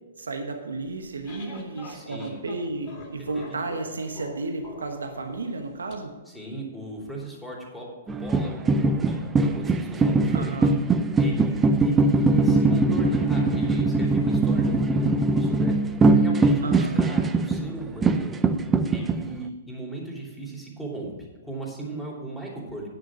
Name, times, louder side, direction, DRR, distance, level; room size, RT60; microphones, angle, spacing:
voice 1, 0.2-6.1 10.3-10.8 16.6-17.1, right 3 dB, 80° right, 5 dB, 1.2 m, -33 dB
sound 1, 0.9-5.9, left 2 dB, 35° left, 2.4 m, -44 dB
voice 2, 1.9-2.4 3.2-3.6 6.3-10.7 11.2-15.7 16.1-18.4 18.9-21.1 21.4-22.9, right 2 dB, ahead, -3 dB, 3.1 m, -37 dB
sound 2, 8.1-17.7 18.0-19.3, right 3 dB, 15° right, 0.5 m, -21 dB
9.7 x 6.4 x 6.1 m, 1.3 s
hypercardioid pair, 120°, 0 cm